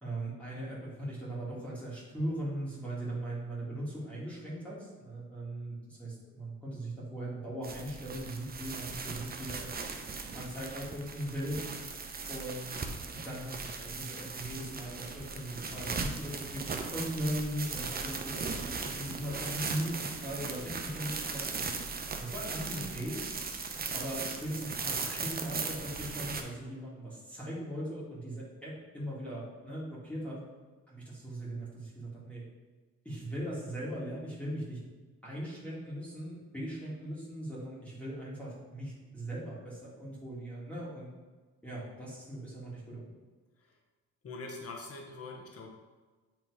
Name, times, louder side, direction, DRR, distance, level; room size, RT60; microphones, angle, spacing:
voice 1, 0.0-9.9 10.3-11.6 12.3-12.8 13.2-21.5 22.2-23.2 23.9-30.4 30.9-32.4 33.0-34.8 35.2-41.1 41.6-43.1, right 1 dB, 5° left, -7 dB, 2.2 m, -39 dB
sound 1, 7.6-26.4, right 4 dB, 30° right, 0.8 m, -38 dB
voice 2, 44.2-45.7, left 3 dB, 50° left, 1 dB, 1.4 m, -43 dB
7.9 x 3.5 x 4.8 m, 1.3 s
cardioid pair, 90°, 30 cm